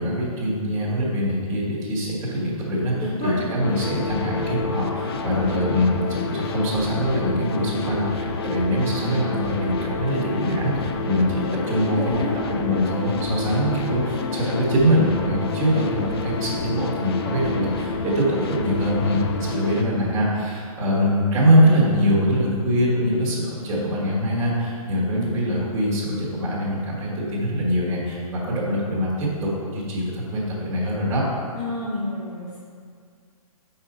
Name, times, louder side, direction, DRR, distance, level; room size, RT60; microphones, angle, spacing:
voice 1, 0.0-31.3, equal, 15° right, -10 dB, 1.9 m, -23 dB
voice 2, 3.0-3.5 11.8-12.4 31.6-32.6, left 2 dB, 20° left, -12 dB, 1.7 m, -29 dB
sound 1, 3.6-19.8, left 4 dB, 40° left, 0.5 m, -29 dB
7.9 x 5.5 x 4.4 m, 2.2 s
hypercardioid pair, 165°, 19 cm